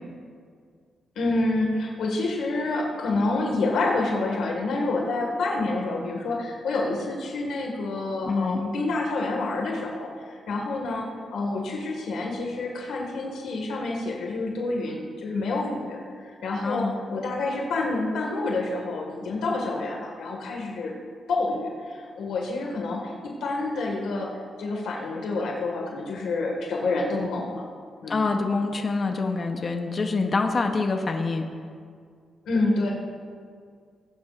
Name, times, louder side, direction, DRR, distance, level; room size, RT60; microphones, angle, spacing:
voice 1, 1.2-20.9 21.3-24.3 24.6-27.5 28.0-28.3 32.5-32.9, left 2 dB, 85° left, -1 dB, 1.8 m, -28 dB
voice 2, 8.2-8.6 16.6-17.0 28.1-31.5, left 3 dB, 35° left, 4 dB, 0.9 m, -26 dB
19.5 x 9.3 x 2.5 m, 2.1 s
cardioid pair, 130°, 0 cm